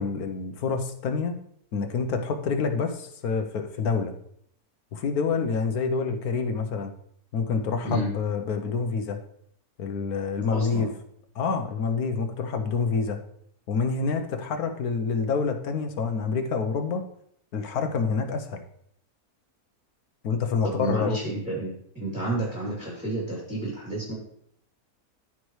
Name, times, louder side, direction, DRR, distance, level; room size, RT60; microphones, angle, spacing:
voice 1, 0.0-1.4 1.7-4.1 4.9-6.9 7.3-9.2 9.8-10.9 11.3-13.2 13.7-17.0 17.5-18.6 20.2-21.2, left 5 dB, 80° left, 6 dB, 1.4 m, -27 dB
voice 2, 10.5-10.9 20.6-24.1, right 2 dB, 5° right, -6 dB, 2.8 m, -31 dB
14.0 x 4.8 x 3.2 m, 0.69 s
omnidirectional pair, 1.6 m